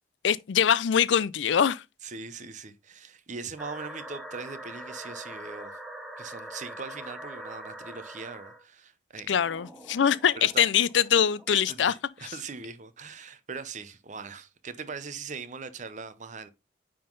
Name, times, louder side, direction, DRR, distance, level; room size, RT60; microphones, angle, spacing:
voice 1, 0.2-1.8 9.3-11.9 12.2-12.3, left 8 dB, 85° left, 0.4 m, -23 dB
voice 2, 2.0-5.8 6.2-9.3 10.4-10.7 11.5-16.5, right 4 dB, 45° right, 0.8 m, -40 dB
sound 1, 3.6-8.6 9.4-11.9, right 1 dB, ahead, 0.9 m, -43 dB
9.4 x 3.8 x 3.9 m
head